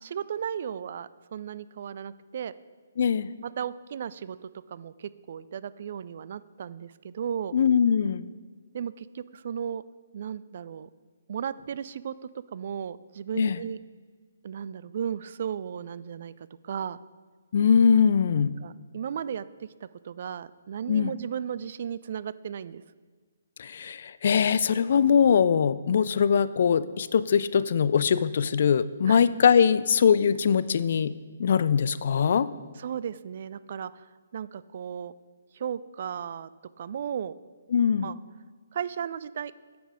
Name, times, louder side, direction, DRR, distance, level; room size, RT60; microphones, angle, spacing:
voice 1, 0.0-2.5 3.4-7.6 8.7-9.8 10.1-10.9 11.3-12.1 12.5-13.8 14.4-16.3 16.6-17.0 18.6-22.8 29.1-29.2 32.8-35.1 35.5-36.5 36.8-37.3 38.0-38.1 38.7-39.5, right 8 dB, 50° right, 17 dB, 0.3 m, -35 dB
voice 2, 3.0-3.3 7.5-8.2 13.3-13.6 17.5-18.6 20.9-21.1 23.6-31.1 31.4-32.5 37.7-38.1, left 7 dB, 55° left, 15 dB, 0.3 m, -22 dB
9.2 x 6.1 x 4.9 m, 1.5 s
figure-of-eight pair, 135°, 0 cm